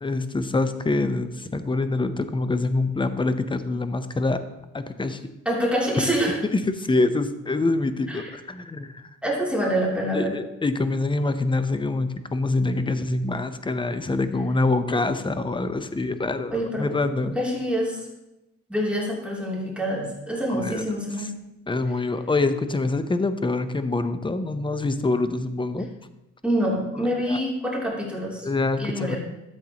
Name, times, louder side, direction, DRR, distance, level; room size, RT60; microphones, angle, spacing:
voice 1, 0.0-4.4 4.7-5.2 6.5-9.0 10.1-17.4 20.5-20.8 21.2-21.3 21.7-25.9 27.3-27.4 28.4-29.2, left 2 dB, 15° left, 10 dB, 0.7 m, -25 dB
voice 2, 5.4-6.3 8.1-8.3 9.2-10.3 16.5-16.9 17.3-18.1 18.7-21.3 26.4-28.5 28.8-29.2, equal, 5° right, -4 dB, 3.0 m, -26 dB
13.0 x 7.9 x 2.9 m, 0.96 s
cardioid pair, 90°, 30 cm